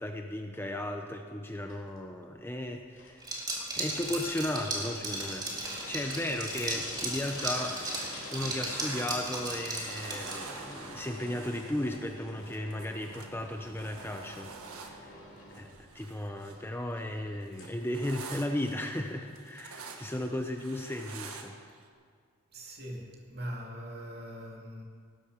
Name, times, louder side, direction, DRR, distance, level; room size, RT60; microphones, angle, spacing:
voice 1, 0.0-3.2 3.8-14.5 14.8-15.2 15.6-21.7, left 1 dB, 10° left, 4 dB, 0.6 m, -35 dB
sound 1, 1.7-18.7, left 2 dB, 60° left, 3.5 m, -48 dB
Liquid, 3.2-10.6, right 2 dB, 20° right, 2.4 m, -36 dB
sound 2, 7.3-9.6 9.9-16.6 16.9-21.8, right 4 dB, 80° right, 1.5 m, -47 dB
voice 2, 22.5-24.8, equal, 45° right, 0 dB, 2.5 m, -41 dB
18.0 x 13.0 x 5.1 m, 2.1 s
head